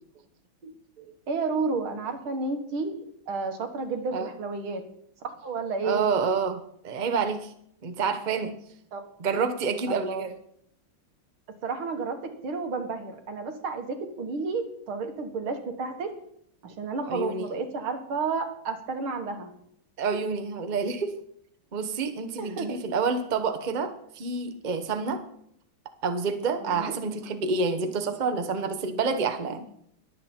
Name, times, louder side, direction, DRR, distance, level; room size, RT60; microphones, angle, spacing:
voice 1, 1.3-2.9 3.3-4.8 5.4-6.0 8.9-9.0 9.9-10.2 11.6-12.2 12.4-16.1 16.6-19.5 22.4-22.8 26.6-26.9, right 4 dB, 90° right, 5 dB, 2.5 m, -31 dB
voice 2, 5.8-7.5 7.8-8.5 9.2-10.4 17.1-17.5 20.0-21.1 21.7-25.2 26.0-29.7, right 5 dB, 30° right, 8 dB, 0.9 m, -28 dB
21.5 x 8.1 x 4.4 m, 0.69 s
omnidirectional pair, 2.2 m